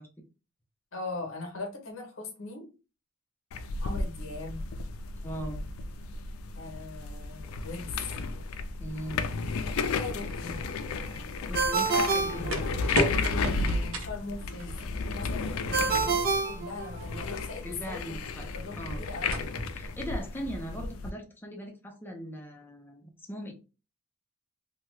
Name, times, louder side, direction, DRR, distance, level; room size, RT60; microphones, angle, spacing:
voice 1, 0.9-2.7 3.8-4.6 6.5-8.0 10.0-10.6 11.9-12.6 13.3-14.7 15.1-18.1 18.5-19.3, left 3 dB, 70° left, 0.9 m, -39 dB
sound 1, 3.5-21.1, left 4 dB, 85° left, 0.4 m, -33 dB
voice 2, 5.2-5.6 8.8-9.2 11.5-12.8 17.6-19.0 19.7-23.5, equal, 10° left, 0.6 m, -39 dB
sound 2, 9.9-20.8, equal, 75° right, 0.7 m, -38 dB
Ringtone, 11.5-13.2 15.7-17.4, right 4 dB, 45° right, 0.5 m, -28 dB
2.8 x 2.2 x 3.1 m
head